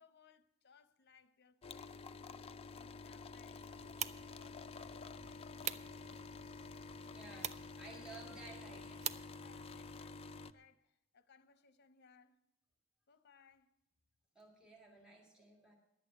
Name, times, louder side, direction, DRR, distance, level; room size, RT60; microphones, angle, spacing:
voice 1, 0.0-2.4 2.7-5.8 7.3-7.5 7.8-8.6 9.4-12.4 13.1-13.8, left 5 dB, 55° left, 0.7 m, -67 dB
sound 1, 1.6-10.5, left 4 dB, 30° left, 0.4 m, -50 dB
sound 2, 3.6-10.0, right 8 dB, 35° right, 0.4 m, -47 dB
voice 2, 7.0-9.2 14.4-15.8, right 2 dB, 5° right, 1.9 m, -55 dB
11.0 x 8.3 x 8.9 m
head